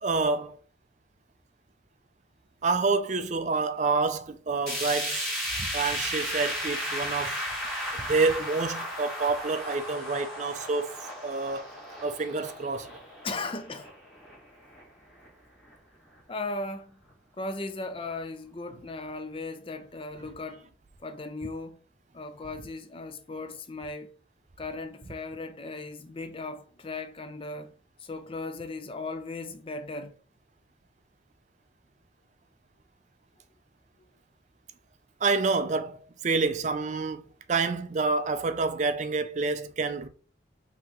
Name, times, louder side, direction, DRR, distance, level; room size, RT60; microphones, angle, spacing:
voice 1, 0.0-0.6 2.6-7.4 7.9-10.9 11.2-12.9 35.2-40.1, right 4 dB, 40° right, 0.4 m, -28 dB
sound 1, 4.7-14.8 15.2-15.3 15.7-15.8 16.6-16.7, equal, ahead, 1.7 m, -35 dB
voice 2, 13.2-13.9 16.3-17.0 17.4-20.7 21.0-21.8 22.1-24.1 24.6-27.7 28.0-30.1, left 3 dB, 30° left, 0.5 m, -37 dB
5.6 x 2.9 x 3.0 m
head